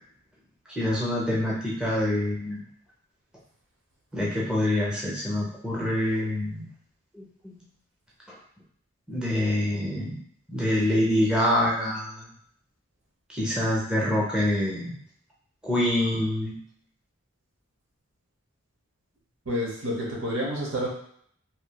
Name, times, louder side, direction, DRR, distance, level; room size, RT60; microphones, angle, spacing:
voice 1, 0.8-2.6 4.1-6.6 7.1-7.6 9.1-10.2 10.5-12.3 13.4-14.9 15.6-16.6, left 1 dB, 5° right, -5 dB, 0.5 m, -26 dB
voice 2, 19.4-20.9, equal, 80° right, -2 dB, 0.9 m, -29 dB
3.0 x 2.7 x 2.2 m, 0.64 s
head